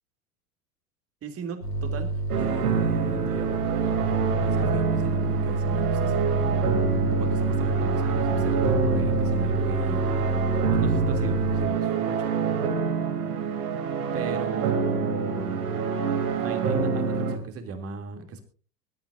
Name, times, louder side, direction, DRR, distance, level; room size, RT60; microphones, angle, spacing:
voice 1, 1.2-6.7 7.2-10.0 10.7-12.4 14.1-15.9 16.4-18.4, right 5 dB, 30° right, 5 dB, 2.9 m, -37 dB
sound 1, 1.6-11.7, right 2 dB, 80° left, 5.0 m, -27 dB
sound 2, 2.3-17.4, right 6 dB, 65° right, 3.0 m, -27 dB
24.0 x 12.5 x 2.6 m, 0.37 s
figure-of-eight pair, 85°, 47 cm